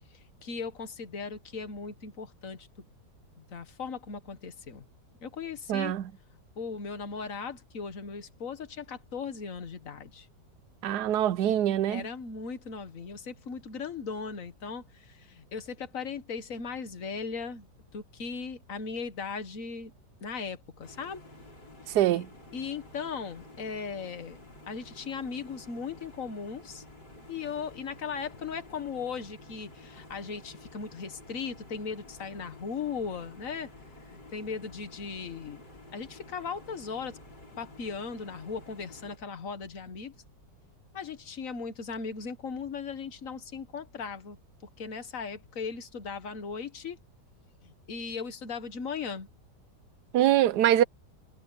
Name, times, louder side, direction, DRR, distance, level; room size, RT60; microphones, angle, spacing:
voice 1, 0.4-2.7 3.4-4.9 5.2-6.0 6.6-10.3 11.9-17.7 17.9-19.9 20.2-21.2 21.8-22.3 22.5-24.4 24.7-26.8 27.3-33.7 34.1-35.6 35.9-37.2 37.6-40.1 40.9-44.4 44.8-47.0 47.6-49.3, left 5 dB, 50° left, 1.9 m, -38 dB
voice 2, 5.7-6.0 10.8-12.0 21.9-22.2 50.1-50.8, right 12 dB, 75° right, 1.2 m, -23 dB
sound 1, 20.8-39.2, left 2 dB, 75° left, 8.1 m, -51 dB
omnidirectional pair, 1.8 m